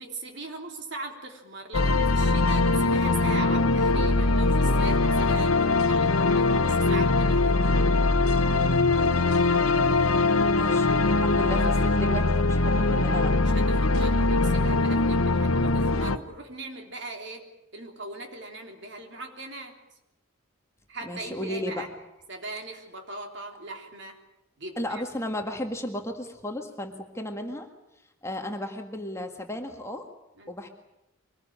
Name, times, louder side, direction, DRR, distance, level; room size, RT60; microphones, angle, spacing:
voice 1, 0.0-7.9 13.4-17.4 17.7-19.8 20.9-21.9 22.3-24.2 24.6-25.0 30.4-30.5, right 2 dB, 55° right, 3 dB, 3.5 m, -39 dB
sound 1, 1.7-16.2, left 3 dB, 85° left, 1.1 m, -22 dB
voice 2, 9.8-13.3 21.0-21.8 24.8-27.7 28.2-30.1 30.5-30.7, left 1 dB, 15° left, 4 dB, 1.8 m, -34 dB
24.0 x 20.0 x 8.8 m, 0.88 s
head